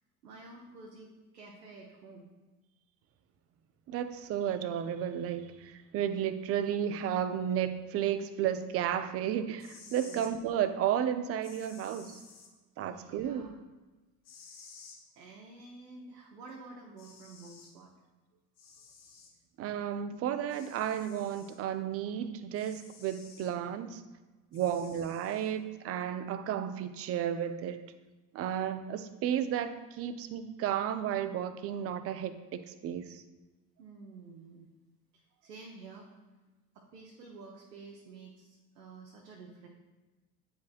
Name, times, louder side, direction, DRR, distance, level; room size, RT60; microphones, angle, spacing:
voice 1, 0.2-2.3 10.0-10.3 12.8-13.5 14.4-14.6 15.1-17.9 24.6-24.9 33.8-34.7 35.1-36.1 36.7-39.7, right 3 dB, 75° right, -1 dB, 0.9 m, -50 dB
voice 2, 3.9-12.2 12.8-13.5 19.6-24.0 24.5-27.9 28.3-33.2, right 9 dB, 30° right, 11 dB, 0.5 m, -33 dB
sound 1, 9.6-10.3 11.4-12.5 14.2-15.0 16.5-16.6 17.0-17.7 18.6-19.3 20.5-21.6 22.5-23.5 24.5-25.5, left 5 dB, 55° left, 2.0 m, -54 dB
9.0 x 5.1 x 2.5 m, 1.2 s
figure-of-eight pair, 60°, 49 cm